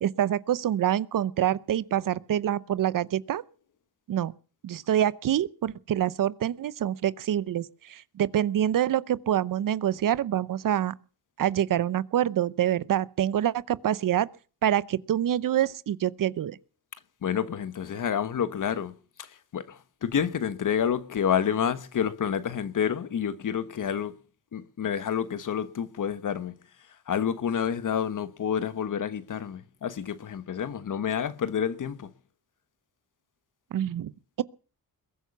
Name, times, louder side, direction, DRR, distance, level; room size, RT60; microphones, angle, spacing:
voice 1, 0.0-3.4 4.1-4.3 4.6-10.9 11.4-14.3 14.6-16.6 33.7-34.1, right 11 dB, 65° right, 0.7 m, -26 dB
voice 2, 17.2-24.1 24.5-26.5 27.1-32.1, left 8 dB, 55° left, 1.3 m, -29 dB
21.5 x 9.2 x 7.0 m
cardioid pair, 100°, 36 cm